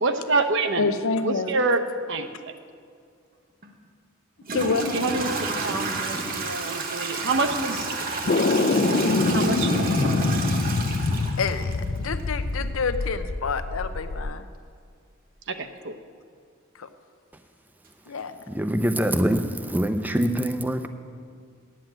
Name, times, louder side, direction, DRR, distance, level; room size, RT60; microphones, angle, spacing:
voice 1, 0.0-0.9 1.2-1.8 2.1-2.3 4.9-7.9 9.3-9.7 15.5-15.9, right 3 dB, 60° right, 7 dB, 0.7 m, -26 dB
voice 2, 0.8-1.5 4.5-5.1 11.4-14.4 16.8-16.9 18.1-18.4, left 4 dB, 85° left, 10 dB, 0.7 m, -28 dB
Toilet flush / Trickle dribble, 3.6-3.7 4.4-12.2, right 3 dB, 45° right, 1.1 m, -30 dB
sound 1, 8.3-14.3, left 3 dB, 45° left, 0.4 m, -25 dB
voice 3, 18.5-20.9, equal, 10° right, 8 dB, 0.5 m, -24 dB
8.8 x 7.7 x 9.0 m, 2.2 s
head